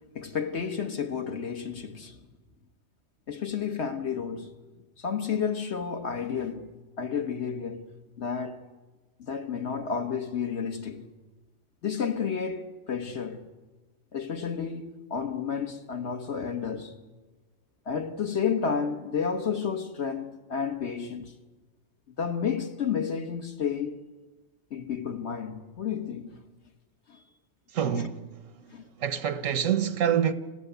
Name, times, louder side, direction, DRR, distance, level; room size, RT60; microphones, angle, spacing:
voice 1, 0.1-2.2 3.3-4.6 5.0-8.6 9.2-11.1 11.8-13.5 14.1-17.0 17.8-21.4 22.2-24.0 24.7-26.4 27.1-27.2 28.0-28.1 28.7-28.8, left 6 dB, 60° left, 1.7 m, -31 dB
voice 2, 27.7-28.4 29.0-30.3, right 8 dB, 90° right, 1.5 m, -26 dB
29.0 x 15.5 x 8.1 m
omnidirectional pair, 1.3 m